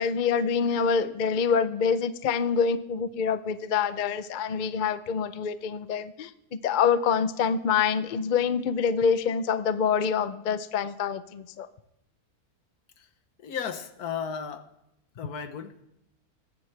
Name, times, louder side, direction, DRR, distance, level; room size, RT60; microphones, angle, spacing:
voice 1, 0.0-11.7, left 6 dB, 55° left, 13 dB, 0.5 m, -26 dB
voice 2, 13.4-14.7 15.2-15.8, left 7 dB, 85° left, 10 dB, 1.5 m, -35 dB
21.5 x 9.5 x 3.3 m, 0.83 s
omnidirectional pair, 1.6 m